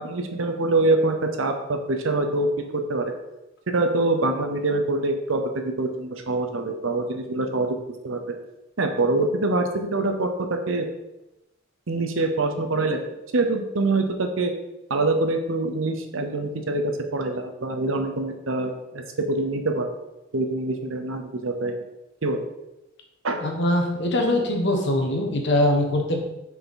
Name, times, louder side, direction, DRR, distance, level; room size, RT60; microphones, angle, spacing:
voice 1, 0.0-3.1 3.7-5.4 5.8-7.8 8.0-8.2 8.8-10.8 11.9-13.0 13.3-14.5 14.9-16.8 17.1-19.0 19.3-19.9 20.3-21.7 22.2-22.4 23.2-23.4, right 2 dB, 85° right, 5 dB, 0.8 m, -24 dB
voice 2, 23.4-26.2, left 1 dB, 60° left, 2 dB, 1.1 m, -22 dB
5.6 x 4.5 x 3.9 m, 0.95 s
head